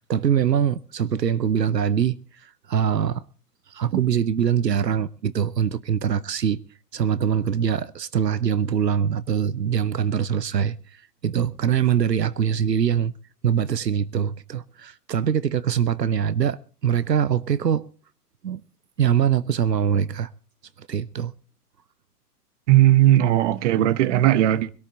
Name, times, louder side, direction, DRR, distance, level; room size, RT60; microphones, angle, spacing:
voice 1, 0.1-2.2 2.4-3.2 3.7-6.6 6.9-13.1 13.4-17.9 18.4-18.6 19.0-20.3 20.8-21.3, right 8 dB, 85° right, 0.8 m, -23 dB
voice 2, 22.7-24.7, right 13 dB, 50° right, 1.1 m, -17 dB
25.0 x 13.5 x 2.6 m
figure-of-eight pair, 110°, 48 cm